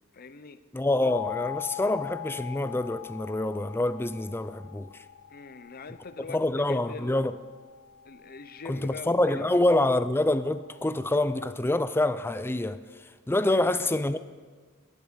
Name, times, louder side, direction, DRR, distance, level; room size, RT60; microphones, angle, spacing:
voice 1, 0.1-0.6 5.3-7.2 8.0-9.8 13.4-13.6, left 4 dB, 45° left, 0.7 m, -43 dB
voice 2, 0.7-4.9 6.3-7.4 8.7-12.8 13.3-14.2, left 1 dB, 10° left, 0.5 m, -26 dB
sound 1, 1.1-5.8, left 16 dB, 90° left, 2.4 m, -40 dB
sound 2, 1.2-11.2, left 4 dB, 45° right, 2.4 m, -56 dB
20.5 x 11.0 x 5.0 m
head